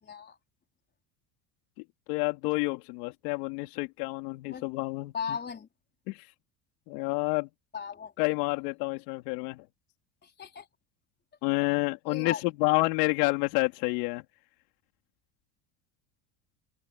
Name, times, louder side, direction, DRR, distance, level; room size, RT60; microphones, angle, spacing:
voice 1, 0.0-0.4 4.5-4.7 5.1-5.7 7.7-8.1 10.2-10.7 12.1-12.4, left 6 dB, 20° left, 4.4 m, -37 dB
voice 2, 2.1-5.4 6.1-6.3 6.9-7.5 8.2-9.7 11.4-14.2, left 25 dB, 85° left, 3.4 m, -29 dB
open air
cardioid pair, 150°, 47 cm